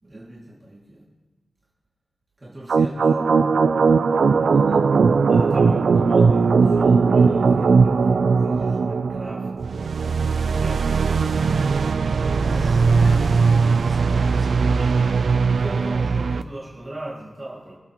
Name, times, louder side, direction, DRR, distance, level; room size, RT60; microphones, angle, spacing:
voice 1, 0.0-1.0 2.4-3.2 4.3-4.5 5.3-11.4 14.7-17.7, right 1 dB, 25° right, -7 dB, 2.3 m, -37 dB
sound 1, 2.7-16.4, right 5 dB, 70° right, 0.4 m, -19 dB
voice 2, 4.5-4.9 12.3-15.1, right 1 dB, 5° right, -5 dB, 2.7 m, -42 dB
24.0 x 8.1 x 3.0 m, 1.3 s
wide cardioid pair, 160°, 0 cm